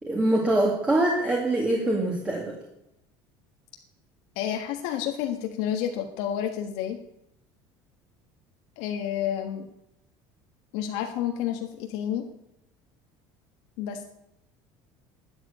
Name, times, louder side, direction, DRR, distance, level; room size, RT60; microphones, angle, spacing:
voice 1, 0.0-2.6, right 1 dB, 10° right, 0 dB, 2.1 m, -24 dB
voice 2, 4.3-7.0 8.8-9.7 10.7-12.3 13.8-14.0, left 10 dB, 75° left, 4 dB, 1.5 m, -30 dB
12.5 x 7.9 x 9.7 m, 0.83 s
cardioid pair, 170°, 11 cm